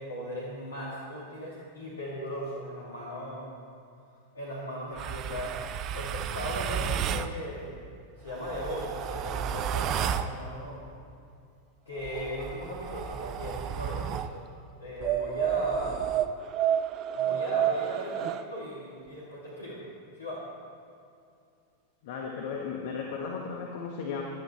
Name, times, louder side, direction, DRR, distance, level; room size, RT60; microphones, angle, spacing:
voice 1, 0.0-3.5 4.3-5.6 5.9-7.8 8.2-10.8 11.9-14.4 14.8-16.0 17.1-19.8 20.2-20.4, equal, 75° left, -6 dB, 2.6 m, -37 dB
sound 1, 5.0-7.3 8.3-10.3 12.0-14.3 15.0-18.4, right 10 dB, 35° right, 0.6 m, -31 dB
voice 2, 22.0-24.2, left 5 dB, 50° left, 0 dB, 1.6 m, -35 dB
20.0 x 12.5 x 4.5 m, 2.4 s
figure-of-eight pair, 90°, 0 cm